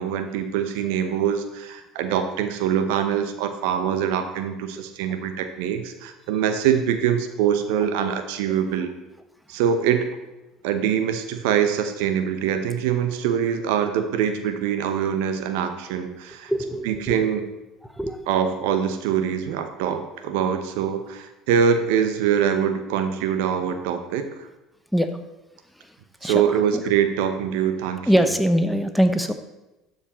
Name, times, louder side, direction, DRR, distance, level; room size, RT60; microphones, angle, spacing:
voice 1, 0.0-8.9 9.5-10.1 10.6-16.5 16.8-17.5 18.3-24.3 26.2-28.3, right 8 dB, 75° right, 8 dB, 0.8 m, -24 dB
voice 2, 16.5-17.1 17.9-18.2 24.9-25.1 26.2-26.8 28.1-29.3, equal, ahead, 8 dB, 0.9 m, -22 dB
12.0 x 5.0 x 4.3 m, 0.99 s
hypercardioid pair, 70°, 0 cm